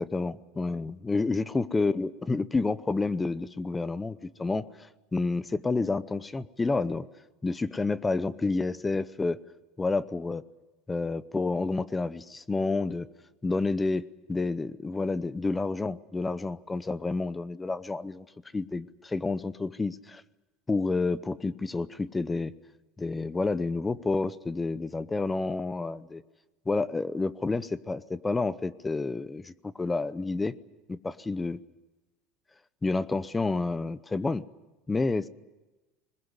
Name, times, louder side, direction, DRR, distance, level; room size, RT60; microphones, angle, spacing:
voice 1, 0.0-4.7 5.1-7.1 7.4-9.4 9.8-10.4 10.9-13.1 13.4-18.3 18.5-20.2 20.7-22.5 23.0-26.2 26.7-30.5 30.9-31.6 32.8-34.4 34.9-35.3, left 3 dB, 15° left, 16 dB, 0.7 m, -29 dB
21.0 x 20.5 x 9.7 m, 1.1 s
supercardioid pair, 130°, 0 cm